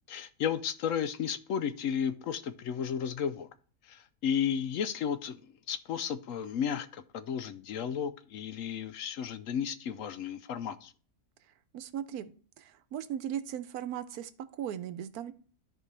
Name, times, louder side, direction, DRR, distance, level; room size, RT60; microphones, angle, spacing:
voice 1, 0.1-3.5 3.8-10.9, left 8 dB, 70° left, 0.9 m, -33 dB
voice 2, 11.7-15.3, right 10 dB, 85° right, 1.2 m, -38 dB
13.5 x 4.5 x 3.3 m
omnidirectional pair, 1.6 m